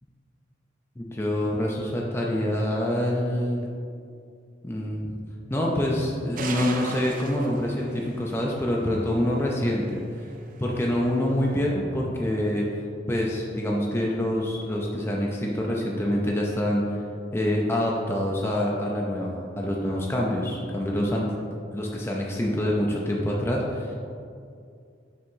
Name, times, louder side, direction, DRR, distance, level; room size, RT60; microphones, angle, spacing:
voice 1, 1.0-3.7 4.6-5.2 5.5-10.0 10.6-12.6 13.1-17.0 17.3-21.2 21.7-23.9, left 1 dB, 15° left, -3 dB, 0.5 m, -26 dB
sound 1, 6.4-11.6, right 3 dB, 45° right, 0.5 m, -40 dB
5.2 x 3.5 x 5.4 m, 2.4 s
head